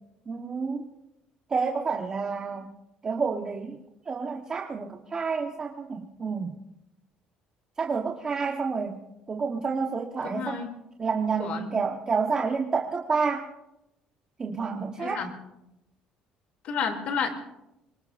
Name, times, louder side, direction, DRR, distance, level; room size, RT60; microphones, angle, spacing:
voice 1, 0.3-0.9 1.5-2.7 3.0-3.8 4.1-6.6 7.8-10.6 11.0-13.5 14.4-15.2, right 5 dB, 30° right, 2 dB, 1.2 m, -29 dB
voice 2, 10.2-10.7 11.4-11.7 15.0-15.3 16.6-17.3, left 6 dB, 60° left, 4 dB, 2.8 m, -30 dB
24.5 x 21.5 x 2.6 m, 0.89 s
cardioid pair, 110°, 2 cm